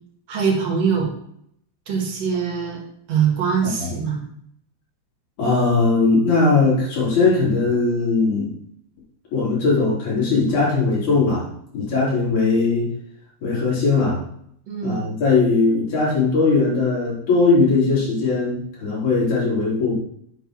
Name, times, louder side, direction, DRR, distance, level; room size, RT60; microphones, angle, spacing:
voice 1, 0.3-1.1 1.9-2.8 3.1-4.2 14.7-15.0, right 6 dB, 65° right, 0 dB, 2.9 m, -22 dB
voice 2, 5.4-8.5 9.3-11.5 11.7-12.9 13.4-14.2 14.8-20.0, left 3 dB, 85° left, -7 dB, 4.8 m, -19 dB
8.4 x 4.5 x 6.0 m, 0.70 s
omnidirectional pair, 3.3 m